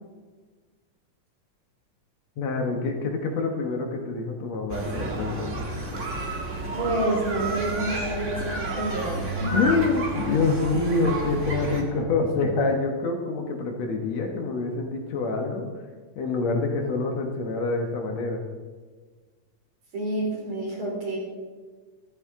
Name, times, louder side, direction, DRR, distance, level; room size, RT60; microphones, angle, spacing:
voice 1, 2.4-5.6 9.5-15.7 16.2-18.4, left 3 dB, 65° left, 3 dB, 2.4 m, -26 dB
sound 1, 4.7-11.8, right 2 dB, 35° right, 1.4 m, -31 dB
voice 2, 6.7-9.6 19.9-21.2, right 1 dB, 60° right, -3 dB, 4.8 m, -28 dB
14.0 x 13.5 x 3.7 m, 1.4 s
omnidirectional pair, 3.4 m